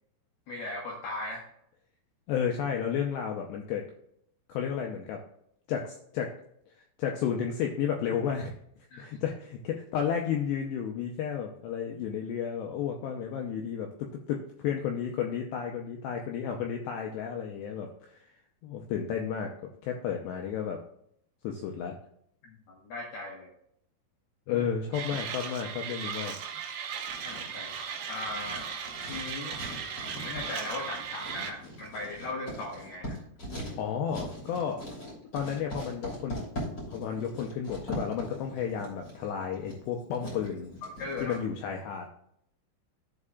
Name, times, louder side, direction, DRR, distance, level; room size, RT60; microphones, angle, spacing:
voice 1, 0.5-1.4 8.9-9.1 22.4-23.5 24.5-24.6 27.2-27.8 28.1-28.7 29.1-29.6 30.2-33.2 41.0-41.4, left 2 dB, 65° left, -2 dB, 2.7 m, -38 dB
voice 2, 2.3-3.9 4.5-5.2 5.7-6.4 7.0-8.5 9.0-18.2 18.6-19.5 19.8-20.8 21.4-22.0 24.5-26.3 33.8-34.8 35.3-36.4 36.9-40.7 41.2-42.1, left 8 dB, 85° left, 2 dB, 2.5 m, -32 dB
Mechanisms, 24.9-31.5, right 7 dB, 75° right, 2.3 m, -37 dB
Writing, 27.0-41.4, equal, 25° left, 2.9 m, -41 dB
14.5 x 5.5 x 2.4 m, 0.71 s
omnidirectional pair, 5.8 m